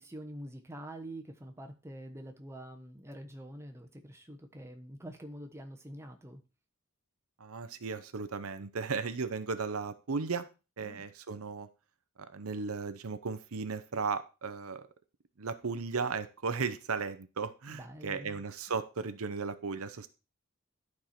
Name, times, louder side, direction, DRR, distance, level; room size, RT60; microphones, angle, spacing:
voice 1, 0.0-6.4 10.8-11.0 17.7-18.4, right 1 dB, 10° right, 3 dB, 1.1 m, -46 dB
voice 2, 7.4-10.5 10.8-11.7 12.2-14.9 15.4-20.1, right 5 dB, 75° right, 12 dB, 0.8 m, -36 dB
11.5 x 4.7 x 4.4 m, 0.31 s
head